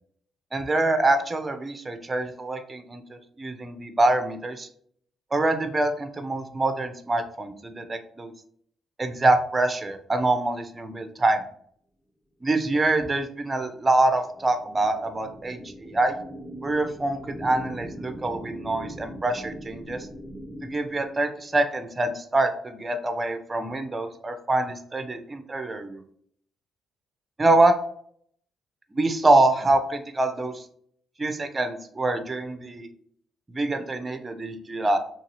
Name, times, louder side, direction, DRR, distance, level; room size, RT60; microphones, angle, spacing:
voice 1, 0.5-4.7 5.3-8.3 9.0-11.4 12.4-16.2 16.6-20.1 20.6-26.0 27.4-27.8 28.9-30.6 31.2-32.9 33.5-35.0, right 2 dB, 25° right, 7 dB, 0.6 m, -25 dB
sound 1, 13.3-21.6, right 1 dB, ahead, 1.0 m, -41 dB
3.0 x 2.7 x 3.0 m, 0.62 s
cardioid pair, 90°, 0 cm